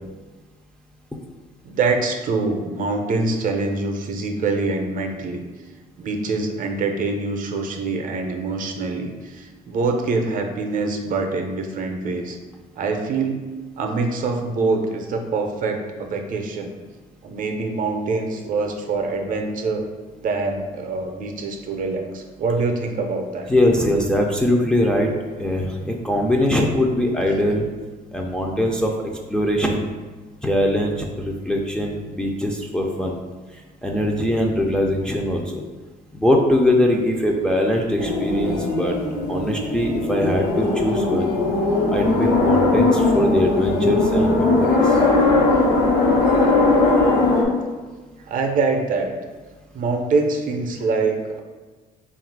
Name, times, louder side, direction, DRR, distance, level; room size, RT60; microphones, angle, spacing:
voice 1, 1.6-5.4 6.0-12.4 12.8-13.4 13.8-16.7 17.2-19.9 20.2-23.5 48.3-49.1 49.7-51.4, right 3 dB, 50° right, 4 dB, 0.5 m, -24 dB
voice 2, 23.5-25.1 25.4-27.7 28.1-28.9 29.3-29.9 30.4-33.2 33.8-35.6 36.1-38.9 39.3-41.3 41.9-45.0, left 1 dB, 5° left, 0 dB, 0.4 m, -21 dB
sound 1, 38.0-47.5, left 2 dB, 80° left, 1.0 m, -19 dB
3.5 x 2.4 x 4.5 m, 1.3 s
cardioid pair, 110°, 17 cm